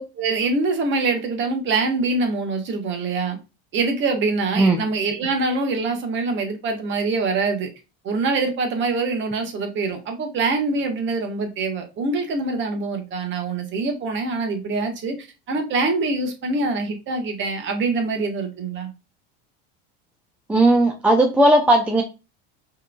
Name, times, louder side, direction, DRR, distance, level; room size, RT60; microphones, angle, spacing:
voice 1, 0.0-3.4 3.7-7.7 8.0-15.1 15.5-18.9, right 3 dB, 40° right, 1.1 m, -24 dB
voice 2, 20.5-22.0, right 1 dB, 5° right, 0.4 m, -16 dB
4.6 x 3.1 x 2.2 m
supercardioid pair, 135°, 30 cm